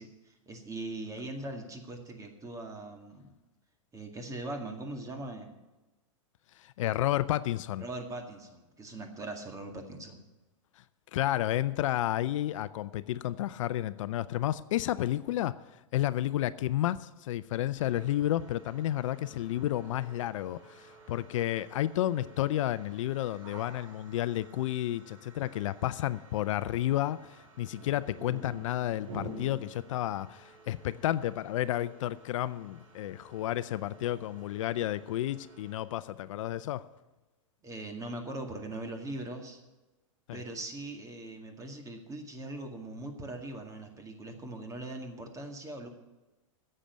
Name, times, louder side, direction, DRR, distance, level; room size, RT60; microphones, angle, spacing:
voice 1, 0.0-3.3 3.9-5.6 7.8-10.2 37.6-39.6 40.3-45.9, right 2 dB, 20° right, 4 dB, 2.0 m, -41 dB
voice 2, 6.6-7.8 11.1-36.9 40.3-40.4, left 13 dB, 70° left, 16 dB, 0.5 m, -31 dB
sound 1, 17.7-35.8, right 1 dB, 70° right, 3.3 m, -51 dB
10.0 x 7.6 x 9.3 m, 1.1 s
hypercardioid pair, 115°, 17 cm